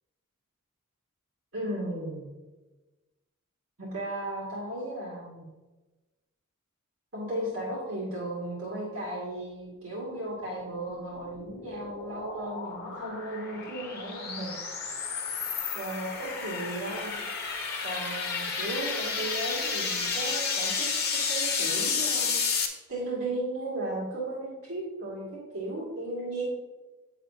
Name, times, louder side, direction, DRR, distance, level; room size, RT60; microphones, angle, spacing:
voice 1, 1.5-2.3 3.8-5.5 7.1-14.5 15.7-17.2 17.8-20.9 21.1-22.3 22.9-25.3 25.5-26.4, right 1 dB, 65° right, -7 dB, 2.4 m, -35 dB
sound 1, 11.0-22.7, left 5 dB, 45° left, 1.1 m, -31 dB
9.5 x 7.4 x 2.9 m, 1.2 s
head